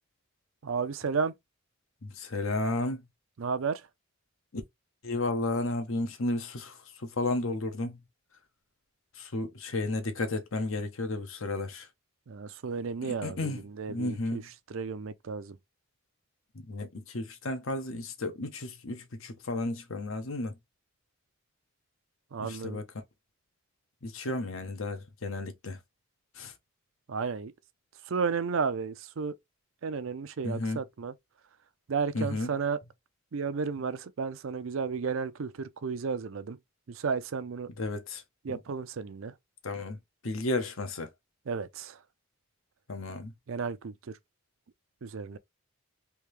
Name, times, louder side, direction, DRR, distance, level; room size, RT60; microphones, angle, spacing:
voice 1, 0.6-1.3 3.4-3.8 12.3-15.6 22.3-22.8 27.1-27.5 28.1-29.3 29.8-31.1 31.9-32.8 33.3-36.6 36.9-37.7 38.4-39.3 41.5-42.0 43.5-44.2 45.0-45.4, right 5 dB, 70° right, 0.5 m, -33 dB
voice 2, 2.2-3.0 5.0-6.7 7.2-8.0 9.2-11.8 13.0-13.6 13.9-14.4 16.7-20.5 22.4-22.8 24.0-25.8 26.4-26.5 30.4-30.8 32.1-32.5 37.8-38.2 39.6-40.0 40.2-41.1 42.9-43.3, left 2 dB, 70° left, 0.8 m, -33 dB
3.5 x 2.7 x 3.1 m
head